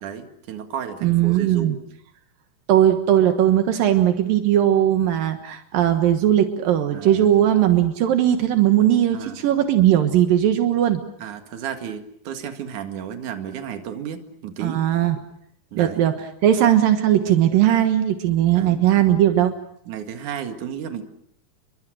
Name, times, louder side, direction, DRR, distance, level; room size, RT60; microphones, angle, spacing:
voice 1, 0.0-1.8 6.9-7.3 9.1-9.4 11.2-14.8 15.7-16.1 18.6-18.8 19.9-21.0, right 8 dB, 65° right, 6 dB, 3.3 m, -33 dB
voice 2, 1.0-1.8 2.7-11.0 14.6-15.2 15.8-16.1 16.4-19.5, right 11 dB, 80° right, 7 dB, 3.1 m, -18 dB
30.0 x 23.5 x 6.3 m, 0.69 s
omnidirectional pair, 4.0 m